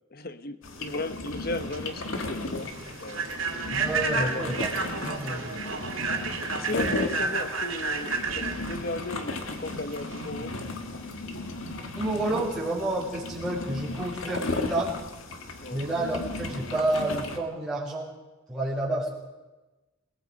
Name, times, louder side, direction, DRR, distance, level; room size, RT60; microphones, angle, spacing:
voice 1, 0.1-2.7 3.0-3.3 4.2-4.5 5.3-5.4 6.5-10.7 15.6-15.9, left 2 dB, 50° left, 10 dB, 1.1 m, -36 dB
sound 1, 0.6-17.4, left 2 dB, 90° left, 1.9 m, -35 dB
Human voice / Train, 1.4-10.3, right 4 dB, 75° right, 2.4 m, -31 dB
voice 2, 3.7-4.7 5.0-5.7 11.9-14.9 15.7-18.1 18.5-19.1, right 1 dB, 5° left, -8 dB, 6.0 m, -30 dB
28.5 x 19.0 x 5.3 m, 1.1 s
head